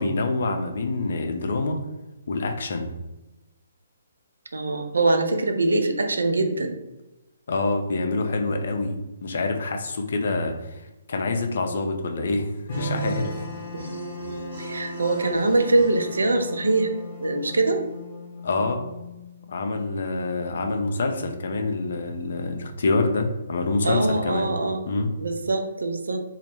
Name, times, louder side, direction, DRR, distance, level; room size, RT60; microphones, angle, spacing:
voice 1, 0.0-1.8 2.3-2.9 7.5-9.0 9.2-10.8 11.1-13.3 18.4-18.8 19.5-24.5 24.8-25.1, left 3 dB, 55° left, 4 dB, 0.3 m, -26 dB
voice 2, 4.5-6.7 14.6-16.9 17.2-17.8 23.8-24.8 25.2-26.2, right 2 dB, 70° right, 5 dB, 0.3 m, -23 dB
Wind instrument woodwind instrument, 12.7-19.6, left 5 dB, 35° left, 0.7 m, -39 dB
sound 1, 12.7-18.0, right 4 dB, 55° right, 1.0 m, -36 dB
2.1 x 2.1 x 2.8 m, 1.0 s
figure-of-eight pair, 130°, 0 cm